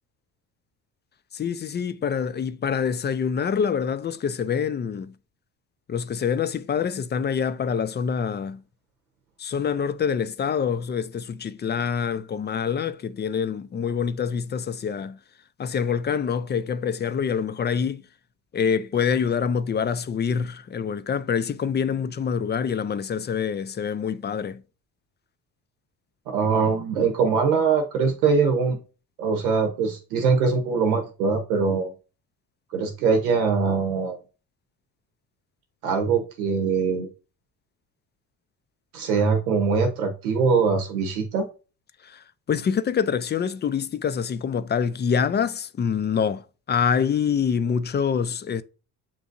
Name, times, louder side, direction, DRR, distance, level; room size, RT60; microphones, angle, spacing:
voice 1, 1.3-5.1 5.9-8.6 9.4-15.2 15.6-18.0 18.5-24.6 42.1-42.2 42.5-46.4 46.7-48.6, left 7 dB, 25° left, 0.4 m, -26 dB
voice 2, 26.3-28.8 29.2-31.9 32.7-34.2 35.8-37.1 38.9-41.5, right 5 dB, 90° right, 0.9 m, -22 dB
7.1 x 2.6 x 2.5 m
hypercardioid pair, 55°, 42 cm